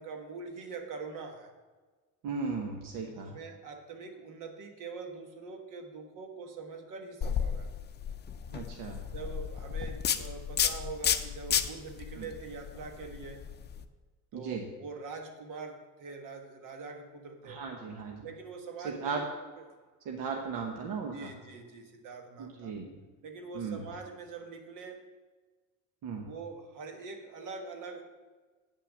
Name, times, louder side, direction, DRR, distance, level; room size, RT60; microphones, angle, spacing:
voice 1, 0.0-1.5 3.0-7.7 9.1-13.5 14.3-17.6 18.2-19.2 21.1-22.7 23.2-25.0 26.2-28.0, right 4 dB, 70° right, 4 dB, 1.5 m, -43 dB
voice 2, 2.2-3.4 8.5-9.1 12.2-12.3 14.3-14.6 17.5-18.3 18.8-19.2 20.0-21.3 22.4-23.0 23.5-23.9 26.0-26.3, right 5 dB, 90° right, 2 dB, 1.1 m, -36 dB
sound 1, 7.2-13.8, left 8 dB, 30° left, 0.5 m, -33 dB
8.9 x 5.9 x 6.3 m, 1.3 s
cardioid pair, 150°, 33 cm